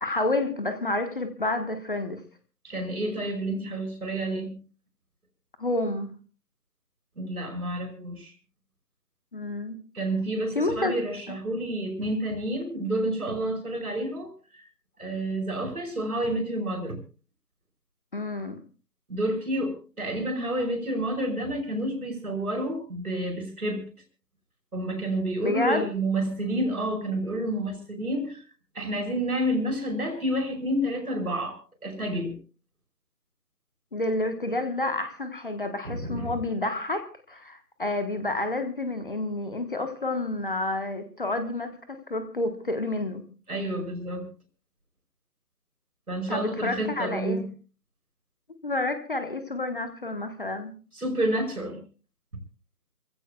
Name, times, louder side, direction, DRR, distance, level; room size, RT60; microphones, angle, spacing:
voice 1, 0.0-2.2 5.6-6.1 9.3-9.7 10.5-11.0 11.3-11.4 18.1-18.6 25.4-25.9 33.9-43.2 46.3-47.4 48.6-50.7, left 2 dB, 30° left, 8 dB, 1.3 m, -29 dB
voice 2, 2.6-4.6 7.2-8.3 9.9-14.6 15.0-17.0 19.1-23.9 24.7-28.4 28.8-32.4 35.8-36.3 43.5-44.3 46.1-47.5 50.9-51.8, right 1 dB, 60° right, 3 dB, 5.2 m, -29 dB
27.5 x 15.5 x 2.3 m, 0.37 s
figure-of-eight pair, 160°, 50 cm